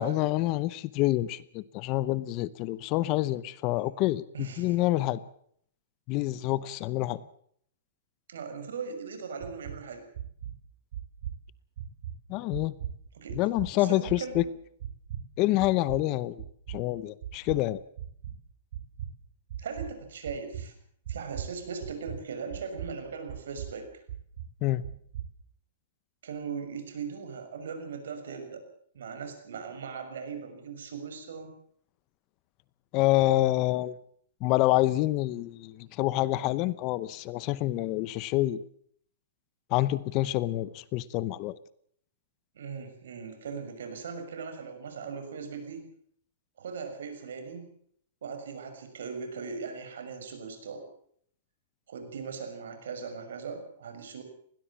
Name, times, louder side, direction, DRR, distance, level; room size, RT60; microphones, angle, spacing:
voice 1, 0.0-5.2 6.1-7.2 12.3-12.7 13.3-14.4 15.4-17.8 24.6-24.8 32.9-33.9 34.4-38.6 39.7-41.6, left 16 dB, 35° left, 18 dB, 0.8 m, -27 dB
voice 2, 4.3-4.7 8.3-10.1 13.1-13.4 13.7-14.5 19.6-20.7 21.1-23.9 26.2-28.6 28.9-31.5 42.5-45.8 46.6-47.7 48.2-50.8 51.9-54.2, right 5 dB, 80° right, 8 dB, 6.4 m, -39 dB
sound 1, 9.4-9.8 10.1-10.5 10.9-11.4 11.8-12.1 12.5-13.0 13.3-13.7 14.1-14.5 14.8-15.2 15.6-16.0 16.4-16.8 17.2-17.6 18.0-18.3 18.7-19.1 19.5-19.9 20.3-20.7 21.1-21.6 21.8-22.2 22.5-22.9 23.3-23.7 24.1-24.5 24.8-25.3, right 10 dB, 60° right, 4.3 m, -38 dB
21.0 x 18.0 x 7.4 m, 0.64 s
hypercardioid pair, 155°, 0 cm